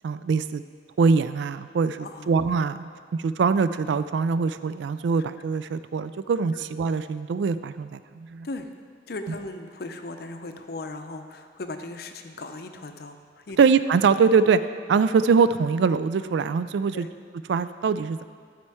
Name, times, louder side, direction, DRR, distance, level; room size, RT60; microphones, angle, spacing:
voice 1, 0.0-0.6 1.0-8.5 13.6-14.6 14.9-17.1 17.5-18.2, right 5 dB, 70° right, 13 dB, 0.3 m, -23 dB
voice 2, 2.0-2.3 6.5-6.6 8.4-8.7 9.1-13.6 16.9-17.1, left 2 dB, 55° left, 7 dB, 0.6 m, -37 dB
13.0 x 4.4 x 4.7 m, 2.1 s
head